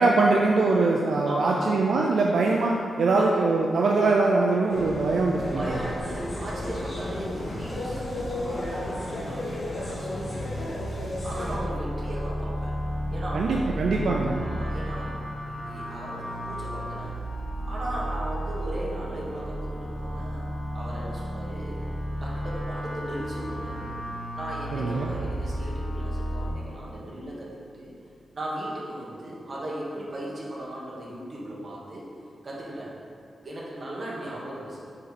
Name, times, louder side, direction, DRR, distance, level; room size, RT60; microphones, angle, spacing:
voice 1, 0.0-5.8 13.3-14.4 24.7-25.1, right 3 dB, 75° right, -1 dB, 0.4 m, -22 dB
voice 2, 1.3-1.7 3.1-3.3 5.4-11.0 11.2-12.8 13.1-13.5 14.4-15.2 15.4-17.2 17.7-20.5 20.7-21.8 22.2-24.0 24.3-27.9 28.3-32.0 32.4-32.9 33.4-34.8, right 1 dB, 40° right, -6 dB, 1.5 m, -37 dB
sound 1, 4.7-11.6, left 1 dB, 40° left, 1.3 m, -33 dB
sound 2, 10.6-26.5, equal, 15° left, 1.4 m, -33 dB
5.5 x 5.2 x 4.2 m, 2.4 s
wide cardioid pair, 140°, 0 cm